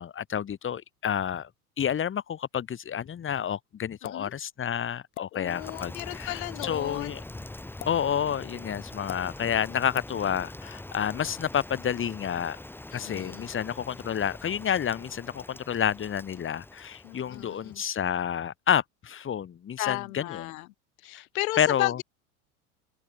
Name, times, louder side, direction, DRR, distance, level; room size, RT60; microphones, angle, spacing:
voice 1, 0.0-1.5 1.8-7.2 7.9-12.6 12.9-20.5 21.1-21.2 21.6-22.0, left 8 dB, 30° left, 1.7 m, -29 dB
sound 1, 4.0-4.3 5.1-5.3 6.5-6.7 7.8-8.0 9.1-9.2 9.9-10.1, left 13 dB, 85° left, 0.8 m, -40 dB
voice 2, 5.3-7.1 12.9-13.5 17.0-17.8 19.8-20.7 21.0-22.0, left 21 dB, 70° left, 1.0 m, -34 dB
Rain, 5.5-17.9, left 2 dB, 5° left, 1.1 m, -43 dB
open air
hypercardioid pair, 80°, 43 cm